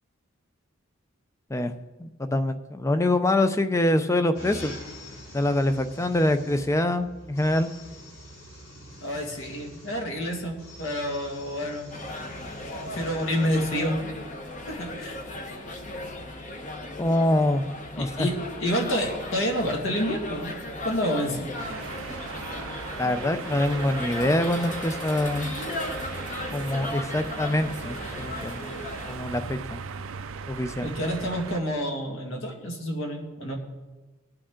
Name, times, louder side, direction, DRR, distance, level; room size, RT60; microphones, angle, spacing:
voice 1, 2.0-4.7 5.3-7.7 17.0-17.6 18.0-18.3 23.0-25.5 26.5-28.7 29.1-29.8 30.5-30.9, left 1 dB, 15° left, 10 dB, 0.5 m, -25 dB
sound 1, 4.3-13.7, equal, 85° left, 3.3 m, -45 dB
voice 2, 9.0-11.9 12.8-14.0 14.7-15.2 18.0-20.5 20.8-21.4 30.8-33.5, equal, 70° left, 1 dB, 2.1 m, -28 dB
sound 2, 11.9-29.1, left 2 dB, 35° left, 1.0 m, -36 dB
sound 3, 21.6-31.6, right 6 dB, 80° right, 0.6 m, -38 dB
18.0 x 8.9 x 3.8 m, 1.2 s
head